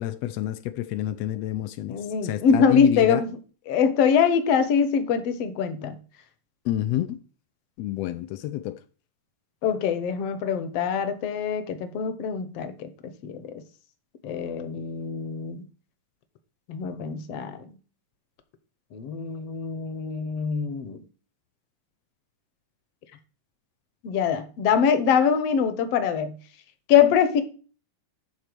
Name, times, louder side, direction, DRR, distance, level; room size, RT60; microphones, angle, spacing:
voice 1, 0.0-3.2 6.6-7.2 7.8-8.8, left 13 dB, 90° left, 1.5 m, -28 dB
voice 2, 1.9-3.3 3.7-5.9 9.6-12.9 13.2-13.5 14.2-15.6 16.7-17.7 18.9-21.0 24.0-26.3 26.9-27.4, left 7 dB, 65° left, 1.7 m, -23 dB
11.0 x 4.3 x 6.8 m
omnidirectional pair, 3.8 m